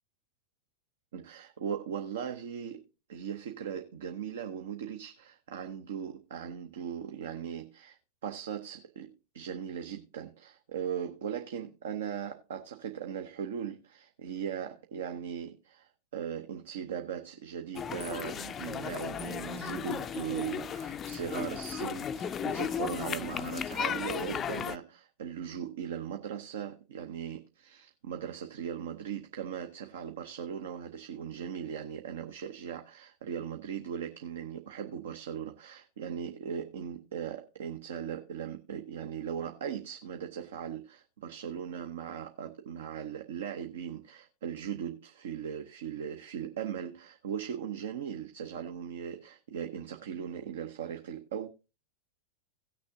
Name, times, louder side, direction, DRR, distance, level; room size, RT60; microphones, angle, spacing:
voice 1, 1.1-2.8 3.1-51.5, right 8 dB, 60° right, 0.8 m, -39 dB
sound 1, 17.7-24.8, left 7 dB, 25° left, 0.4 m, -35 dB
17.5 x 6.5 x 2.7 m
figure-of-eight pair, 90°, 0 cm